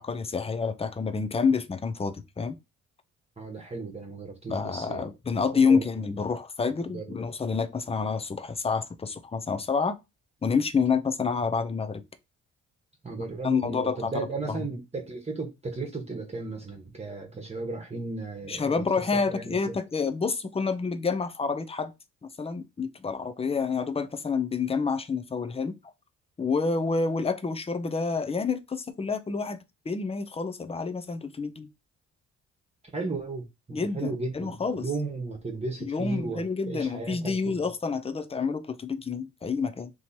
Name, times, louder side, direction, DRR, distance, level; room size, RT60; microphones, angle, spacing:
voice 1, 0.0-2.6 4.5-10.0 10.4-12.0 13.4-14.1 14.5-14.7 18.5-21.9 22.4-25.8 26.4-31.7 33.7-34.9 35.8-39.9, left 5 dB, 20° left, 0.6 m, -28 dB
voice 2, 3.4-5.0 5.3-6.1 6.9-7.0 13.0-19.7 32.9-37.6, right 3 dB, 20° right, 1.3 m, -35 dB
3.4 x 3.0 x 4.3 m
cardioid pair, 90°, 30 cm